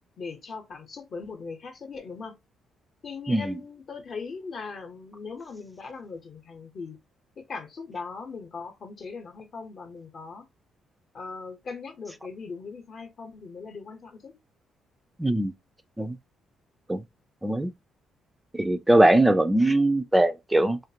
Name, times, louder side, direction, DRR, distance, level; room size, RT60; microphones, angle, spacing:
voice 1, 0.2-2.4 3.0-7.0 7.4-10.5 11.1-14.3, left 4 dB, 50° left, 0.8 m, -39 dB
voice 2, 3.3-3.6 15.2-15.5 16.0-16.2 16.9-17.0 17.4-17.7 18.5-20.8, right 1 dB, 10° right, 0.3 m, -21 dB
2.5 x 2.4 x 2.7 m
cardioid pair, 90°, 0 cm